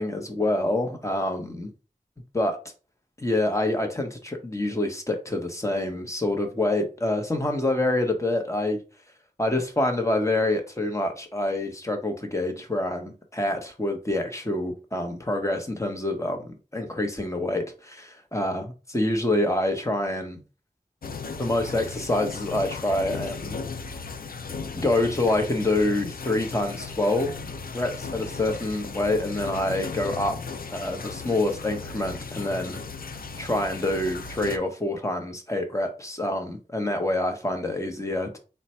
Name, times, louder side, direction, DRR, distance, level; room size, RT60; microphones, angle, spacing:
voice 1, 0.0-1.7 2.3-2.6 3.2-8.8 9.4-20.4 21.4-23.9 24.7-27.3 27.7-30.4 30.7-32.8 33.4-38.4, left 1 dB, 20° left, 0.9 m, -26 dB
sound 1, 21.0-34.6, left 4 dB, 80° left, 0.5 m, -36 dB
3.9 x 2.2 x 4.2 m
wide cardioid pair, 60°, 15 cm